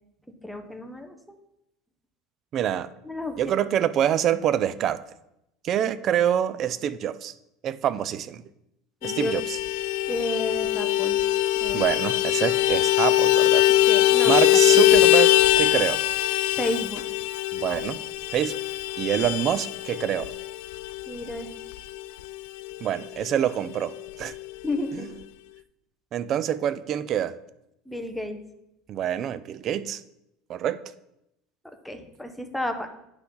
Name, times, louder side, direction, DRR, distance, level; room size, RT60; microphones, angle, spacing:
voice 1, 0.4-1.4 3.0-3.4 9.0-9.3 10.1-11.2 11.5-11.8 13.9-14.8 16.6-17.0 21.1-21.5 24.6-25.1 27.9-28.4 31.6-32.9, left 1 dB, 5° left, 6 dB, 0.9 m, -32 dB
voice 2, 2.5-2.9 3.4-5.0 5.6-7.3 7.6-8.4 9.0-9.6 11.7-13.7 14.3-16.0 17.5-18.0 18.3-18.6 19.0-20.3 22.8-24.3 24.9-25.1 26.1-27.4 28.9-30.0 30.5-30.8, right 10 dB, 40° right, 15 dB, 0.5 m, -26 dB
Vehicle horn car horn honking, 9.0-22.9 23.2-23.3 23.6-23.8 24.1-24.8, left 15 dB, 75° left, 0.4 m, -22 dB
9.9 x 5.8 x 3.9 m, 0.84 s
supercardioid pair, 130°, 0 cm